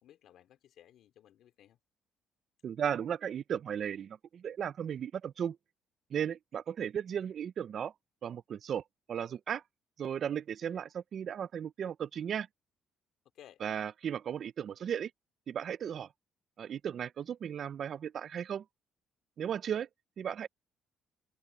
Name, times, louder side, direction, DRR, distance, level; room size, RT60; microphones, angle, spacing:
voice 1, 0.0-1.8 13.3-13.6, left 11 dB, 65° left, 2.9 m, -58 dB
voice 2, 2.6-5.6 6.1-7.9 8.2-8.8 9.1-9.6 10.0-12.5 13.6-15.1 15.5-16.1 16.6-18.6 19.4-19.9 20.2-20.5, right 8 dB, 50° right, 0.4 m, -35 dB
cardioid pair, 130°, 0 cm